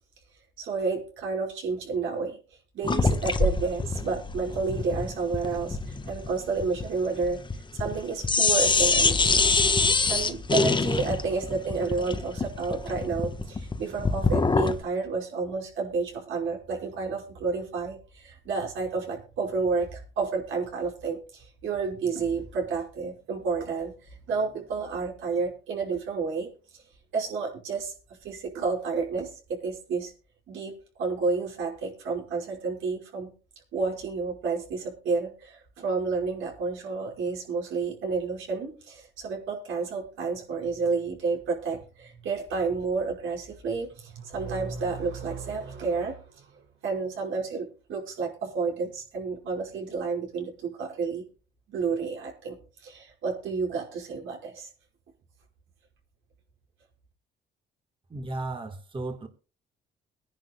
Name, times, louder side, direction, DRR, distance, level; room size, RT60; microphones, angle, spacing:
voice 1, 0.6-7.4 7.7-9.4 9.7-23.9 24.3-26.8 27.1-30.1 30.5-33.3 33.7-46.5 46.8-51.3 51.7-54.7, right 4 dB, 85° right, 5.4 m, -30 dB
sound 1, 2.8-8.0 8.2-14.8, left 3 dB, 25° left, 1.1 m, -25 dB
voice 2, 58.1-59.3, right 2 dB, 25° right, 1.5 m, -34 dB
24.5 x 10.5 x 2.3 m
cardioid pair, 90°, 20 cm